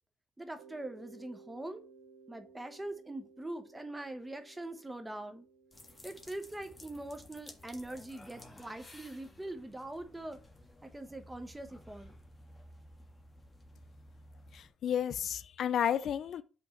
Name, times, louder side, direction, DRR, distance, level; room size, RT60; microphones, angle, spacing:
voice 1, 0.4-1.8 2.3-5.5 6.0-10.4 10.8-12.1, right 1 dB, 15° right, 1.1 m, -43 dB
Mallet percussion, 0.6-9.2, right 5 dB, 90° right, 1.0 m, -60 dB
sound 1, 5.7-14.7, left 1 dB, 20° left, 1.5 m, -55 dB
voice 2, 14.5-16.4, left 9 dB, 65° left, 0.4 m, -32 dB
5.6 x 3.5 x 5.7 m
cardioid pair, 90°, 0 cm